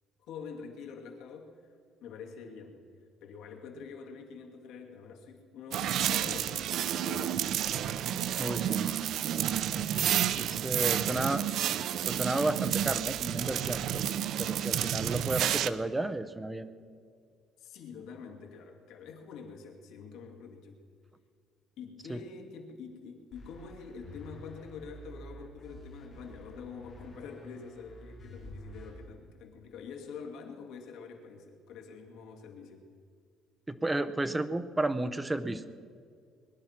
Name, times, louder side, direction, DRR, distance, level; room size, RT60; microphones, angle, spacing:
voice 1, 0.3-1.6 2.0-2.8 3.2-7.5 17.6-20.8 21.8-32.9, left 5 dB, 75° left, 1 dB, 2.5 m, -46 dB
sound 1, 5.7-15.7, right 10 dB, 60° right, 0.5 m, -30 dB
voice 2, 8.4-8.9 9.7-11.4 11.8-14.0 14.4-16.7 22.1-22.2 33.7-35.6, right 2 dB, 10° right, 11 dB, 0.7 m, -33 dB
sound 2, 23.3-28.9, equal, 30° left, 5.0 m, -49 dB
22.0 x 11.0 x 5.9 m, 2.1 s
cardioid pair, 155°, 0 cm